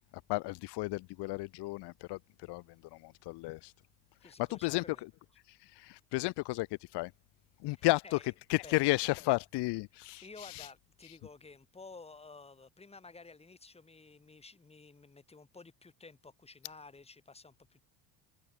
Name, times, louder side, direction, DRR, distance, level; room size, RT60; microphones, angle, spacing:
voice 1, 0.3-2.2 2.5-2.6 2.9-3.7 4.4-5.1 5.8-6.7 6.9-7.1 7.6-10.7, left 22 dB, 70° left, 1.4 m, -33 dB
voice 2, 4.2-5.0 7.8-8.3 8.6-8.8 10.2-17.8, left 3 dB, 15° left, 3.9 m, -53 dB
open air
cardioid pair, 140°, 42 cm